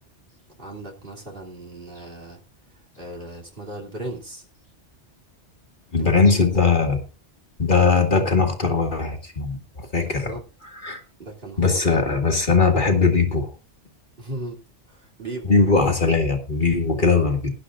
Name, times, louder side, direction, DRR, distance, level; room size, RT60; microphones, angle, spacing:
voice 1, 0.6-2.4 2.9-4.4 6.0-6.4 10.0-10.4 11.2-12.2 12.5-12.6 14.2-14.6 14.9-15.7, right 2 dB, 50° right, -1 dB, 3.2 m, -36 dB
voice 2, 5.9-7.0 7.6-10.3 10.8-11.0 11.6-13.5 15.5-17.5, left 4 dB, 45° left, 3 dB, 2.3 m, -20 dB
19.5 x 11.5 x 2.5 m, 0.29 s
omnidirectional pair, 1.2 m